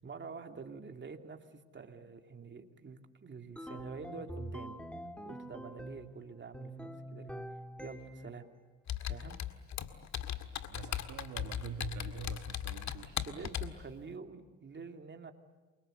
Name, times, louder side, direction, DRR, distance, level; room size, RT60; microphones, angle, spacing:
voice 1, 0.0-4.8 5.2-7.3 7.8-8.4 9.1-9.4 13.2-15.3, right 5 dB, 40° right, 5 dB, 2.8 m, -47 dB
sound 1, 3.6-6.2 6.5-8.4, right 1 dB, 5° left, 1.9 m, -45 dB
Computer keyboard, 8.9-13.8, left 10 dB, 65° left, 1.9 m, -38 dB
voice 2, 10.6-13.2, right 6 dB, 80° right, 6 dB, 2.0 m, -45 dB
28.5 x 24.0 x 8.0 m, 1.4 s
cardioid pair, 90°, 30 cm